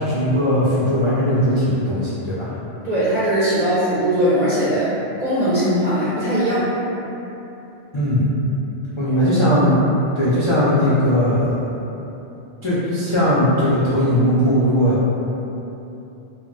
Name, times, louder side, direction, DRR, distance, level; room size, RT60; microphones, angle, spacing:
voice 1, 0.0-2.5 7.9-8.3 9.0-9.8 10.1-11.7 12.6-15.1, equal, 55° left, -12 dB, 0.3 m, -18 dB
voice 2, 2.8-4.9 5.2-6.7, equal, 55° right, -11 dB, 0.4 m, -19 dB
2.2 x 2.1 x 3.8 m, 3.0 s
omnidirectional pair, 1.3 m